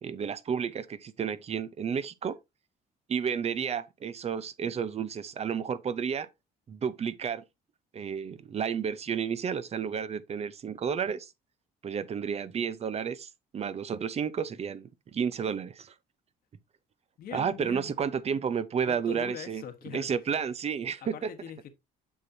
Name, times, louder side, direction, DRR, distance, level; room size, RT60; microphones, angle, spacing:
voice 1, 0.0-2.4 3.1-6.3 6.7-7.4 7.9-11.3 11.8-15.9 17.3-19.6 19.9-21.3, right 7 dB, 40° right, 0.7 m, -31 dB
voice 2, 17.2-17.9 18.9-20.1 21.0-21.7, left 8 dB, 60° left, 1.3 m, -42 dB
8.3 x 6.1 x 2.7 m
cardioid pair, 110°, 17 cm